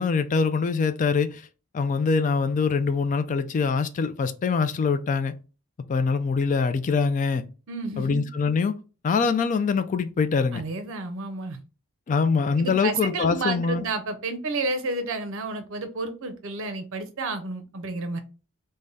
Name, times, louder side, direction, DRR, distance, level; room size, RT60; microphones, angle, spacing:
voice 1, 0.0-1.4 1.7-5.3 5.9-7.4 8.0-8.7 9.0-10.6 12.1-13.8, left 5 dB, 35° left, 0.3 m, -24 dB
voice 2, 7.7-8.3 10.5-11.6 12.6-18.2, right 3 dB, 65° right, 0.6 m, -31 dB
3.4 x 2.1 x 3.8 m
head